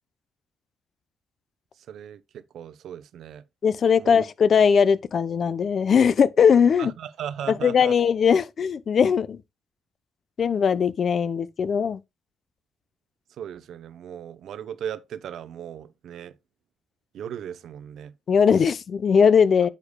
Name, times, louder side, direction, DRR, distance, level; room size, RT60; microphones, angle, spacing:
voice 1, 1.9-3.4 4.0-4.2 6.8-7.9 13.4-16.4 17.1-18.1, right 9 dB, 70° right, 0.7 m, -37 dB
voice 2, 3.6-6.9 7.5-9.4 10.4-12.0 18.3-19.7, left 6 dB, 50° left, 0.6 m, -20 dB
9.7 x 6.8 x 2.2 m
cardioid pair, 90°, 0 cm